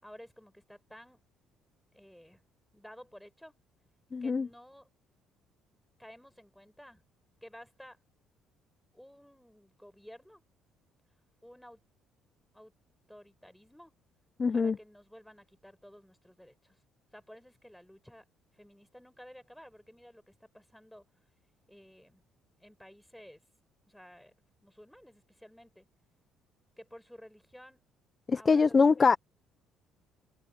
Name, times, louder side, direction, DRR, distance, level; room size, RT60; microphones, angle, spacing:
voice 1, 0.0-1.2 1.9-2.4 2.7-3.5 4.2-4.9 6.0-7.0 7.4-8.0 8.9-10.4 11.4-11.8 12.5-12.7 13.1-13.9 14.5-16.8 17.1-18.2 18.5-21.0 21.7-22.2 22.6-23.4 23.9-24.3 24.6-25.9 26.8-27.8 28.3-29.2, equal, 5° left, 6.5 m, -53 dB
voice 2, 4.1-4.5 14.4-14.7 28.3-29.2, left 4 dB, 35° left, 0.8 m, -23 dB
supercardioid pair, 70°, 0 cm